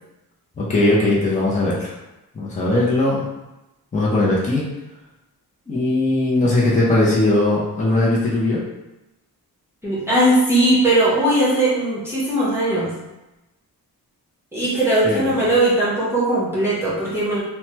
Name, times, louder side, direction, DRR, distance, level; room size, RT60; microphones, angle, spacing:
voice 1, 0.6-1.9 2.3-3.2 3.9-4.6 5.7-8.6 15.0-15.2, left 2 dB, 20° left, -6 dB, 0.6 m, -19 dB
voice 2, 9.8-12.9 14.5-17.4, right 1 dB, 5° right, -10 dB, 0.9 m, -19 dB
3.0 x 2.2 x 3.0 m, 0.99 s
wide cardioid pair, 150°, 38 cm